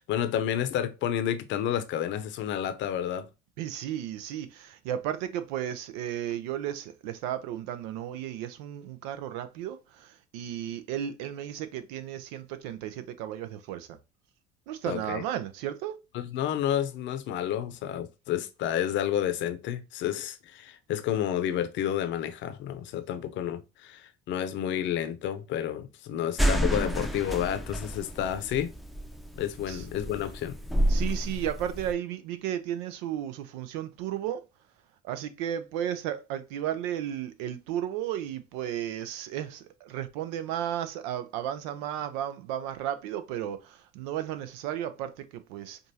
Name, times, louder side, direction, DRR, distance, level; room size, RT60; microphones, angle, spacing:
voice 1, 0.0-3.3 14.9-15.2 16.1-28.7 29.4-30.6, left 10 dB, 60° left, 0.7 m, -30 dB
voice 2, 3.6-14.0 14.7-16.0 29.7-29.8 30.9-34.4 35.0-45.8, right 11 dB, 80° right, 0.7 m, -34 dB
sound 1, 26.4-31.9, equal, ahead, 0.6 m, -29 dB
5.3 x 2.5 x 2.8 m
supercardioid pair, 75°, 21 cm